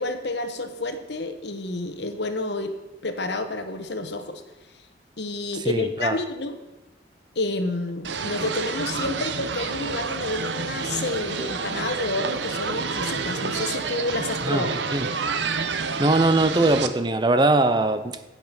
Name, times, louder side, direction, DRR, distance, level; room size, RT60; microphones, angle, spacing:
voice 1, 0.0-2.7 3.0-4.4 5.2-6.6 7.3-14.7, left 2 dB, 70° left, 8 dB, 1.2 m, -29 dB
voice 2, 5.7-6.2 14.4-14.7 14.9-15.1 16.0-18.3, right 2 dB, 25° right, 11 dB, 0.6 m, -21 dB
sound 1, 8.0-16.9, right 5 dB, 80° right, 0.8 m, -29 dB
16.0 x 5.9 x 5.9 m, 1.0 s
head